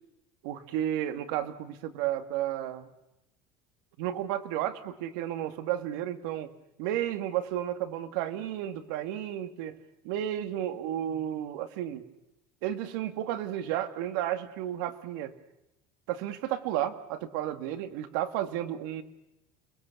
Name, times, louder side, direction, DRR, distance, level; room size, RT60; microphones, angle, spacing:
voice 1, 0.4-2.9 4.0-6.5 6.8-9.8 10.0-12.0 12.6-15.3 16.1-19.0, right 11 dB, 75° right, 9 dB, 2.1 m, -32 dB
30.0 x 21.0 x 7.1 m, 0.90 s
cardioid pair, 160°, 11 cm